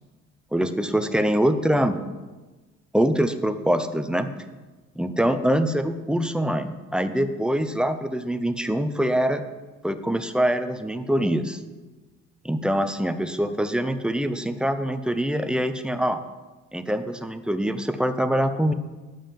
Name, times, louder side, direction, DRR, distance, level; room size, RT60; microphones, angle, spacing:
voice 1, 0.5-2.0 2.9-4.3 5.0-9.4 9.8-11.6 12.4-16.2 16.7-18.7, equal, 5° right, 9 dB, 0.7 m, -24 dB
9.0 x 5.3 x 7.4 m, 1.2 s
cardioid pair, 90°, 30 cm